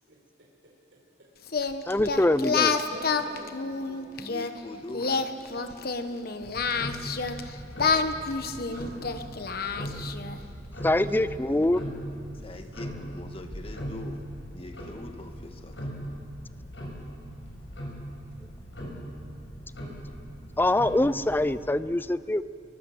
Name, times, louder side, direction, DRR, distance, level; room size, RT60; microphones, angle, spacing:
voice 1, 0.1-1.3 2.0-2.2 2.7-4.6 4.9-7.2 10.9-11.3 12.7-13.1, right 1 dB, 85° right, -3 dB, 5.2 m, -49 dB
Singing, 1.5-4.5 4.9-7.4 7.8-10.4, left 5 dB, 55° left, 1.1 m, -28 dB
voice 2, 1.9-2.7 10.8-11.8 20.6-22.4, left 1 dB, 10° left, 15 dB, 0.5 m, -24 dB
voice 3, 4.2-5.3 12.4-14.2 14.5-15.9, left 2 dB, 30° left, 5 dB, 1.7 m, -42 dB
Tick-tock, 6.4-21.6, equal, 75° left, 6.9 m, -39 dB
25.0 x 24.0 x 7.8 m, 2.6 s
head